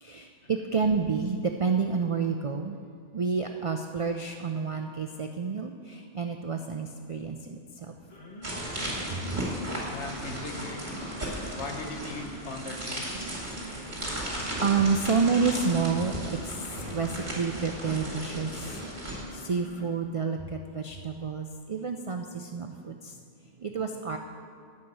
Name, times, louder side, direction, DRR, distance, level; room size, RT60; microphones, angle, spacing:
voice 1, 0.0-2.8 3.1-7.9 9.1-9.4 11.5-11.6 13.7-13.8 14.1-18.7 19.3-23.1 23.6-24.2, right 5 dB, 60° right, 4 dB, 0.3 m, -29 dB
sound 1, 8.0-20.0, right 1 dB, 35° left, 1.5 m, -45 dB
sound 2, 8.4-19.2, right 1 dB, 40° right, 2.4 m, -36 dB
voice 2, 9.8-10.9 11.5-13.2, left 3 dB, 70° left, 3 dB, 1.3 m, -39 dB
10.5 x 5.8 x 7.9 m, 2.2 s
omnidirectional pair, 1.2 m